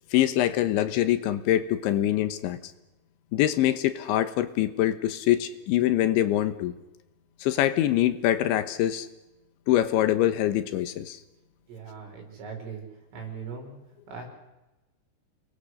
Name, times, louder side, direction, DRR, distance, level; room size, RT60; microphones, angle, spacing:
voice 1, 0.1-2.6 3.3-6.7 7.4-9.1 9.7-11.2, left 13 dB, 75° left, 11 dB, 3.4 m, -24 dB
voice 2, 11.7-12.8 13.1-13.8 14.1-14.3, right 5 dB, 85° right, 1 dB, 8.7 m, -39 dB
29.5 x 21.5 x 6.5 m, 1.0 s
omnidirectional pair, 5.6 m